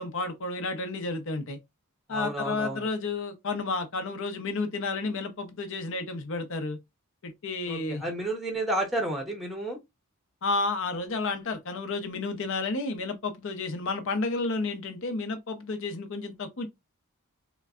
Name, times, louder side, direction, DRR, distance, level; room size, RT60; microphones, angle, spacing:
voice 1, 0.0-1.6 2.1-6.8 7.2-8.0 10.4-16.7, left 3 dB, 60° left, 0.7 m, -31 dB
voice 2, 2.1-2.8 7.7-9.8, right 1 dB, ahead, 0.7 m, -31 dB
3.8 x 2.2 x 2.4 m
head